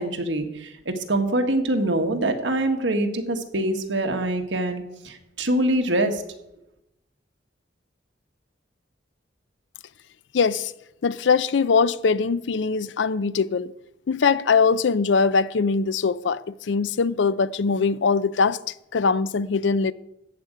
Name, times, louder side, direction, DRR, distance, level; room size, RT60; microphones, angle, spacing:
voice 1, 0.0-6.2, right 1 dB, 75° right, 1.5 m, -24 dB
voice 2, 10.3-10.7 11.0-13.7 14.1-18.6 18.9-19.9, left 5 dB, 75° left, 0.5 m, -22 dB
14.0 x 5.0 x 9.0 m
head